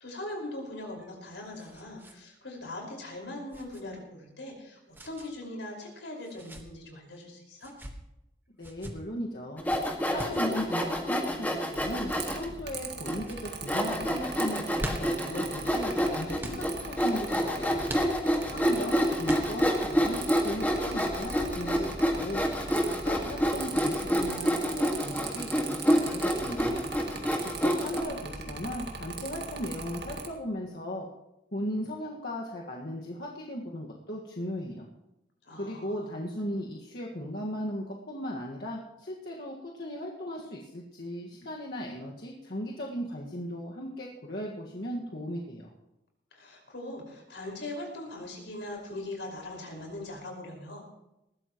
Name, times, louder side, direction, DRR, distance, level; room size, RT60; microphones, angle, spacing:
voice 1, 0.0-7.7 18.4-18.8 35.5-36.1 46.3-50.9, left 1 dB, 80° left, 0 dB, 5.2 m, -41 dB
sound 1, 0.8-2.2 2.5-2.6 3.5-3.8 4.9-5.3 6.2-6.7 7.5-8.0 8.6-8.9 9.7-10.4 11.6-11.9 12.6-12.9 13.2-13.4 14.5-15.3 16.4-16.6 17.9-18.5 19.2-19.8, right 1 dB, 10° right, 1.4 m, -41 dB
voice 2, 8.6-9.6 10.1-17.9 18.5-22.4 22.8-26.8 27.4-31.1 31.5-34.9 35.5-45.7, equal, 55° left, -3 dB, 1.8 m, -37 dB
Sawing, 9.6-12.5 13.1-13.2 13.7-28.0, equal, 10° left, 1.9 m, -28 dB
Mechanical fan, 11.7-30.3, right 4 dB, 65° right, 2.0 m, -40 dB
20.0 x 16.0 x 3.1 m, 0.89 s
head